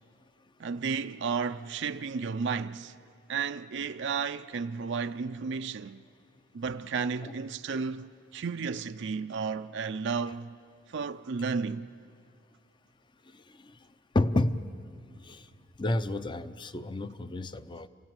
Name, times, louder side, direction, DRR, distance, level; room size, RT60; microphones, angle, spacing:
voice 1, 0.6-2.9 3.3-6.0 6.5-10.6 10.9-11.9, right 5 dB, 60° right, 0.5 m, -33 dB
voice 2, 13.3-13.8 14.1-14.7 15.2-15.5 15.8-17.9, left 2 dB, 25° left, 0.6 m, -30 dB
29.5 x 17.0 x 9.0 m
head